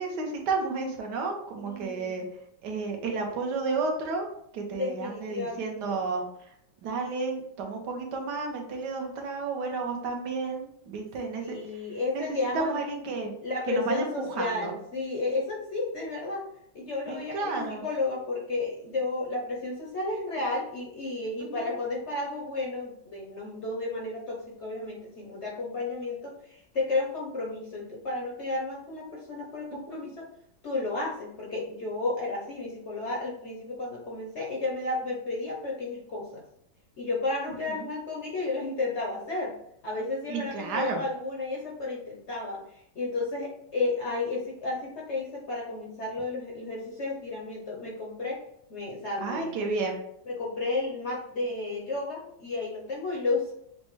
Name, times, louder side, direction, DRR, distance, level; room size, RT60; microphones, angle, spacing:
voice 1, 0.0-2.3 2.6-4.3 4.5-6.5 6.8-11.6 12.1-13.3 13.7-14.7 17.1-17.8 21.4-21.7 29.9-30.0 37.7-37.9 40.3-41.0 49.2-50.0, right 4 dB, 65° right, 2 dB, 1.3 m, -32 dB
voice 2, 1.6-2.1 4.7-6.0 11.4-12.8 13.4-16.4 16.7-30.3 30.6-36.4 37.0-39.5 39.8-48.4 48.7-49.6 50.3-53.5, left 3 dB, 55° left, -2 dB, 0.7 m, -32 dB
6.4 x 2.2 x 3.1 m, 0.72 s
omnidirectional pair, 2.2 m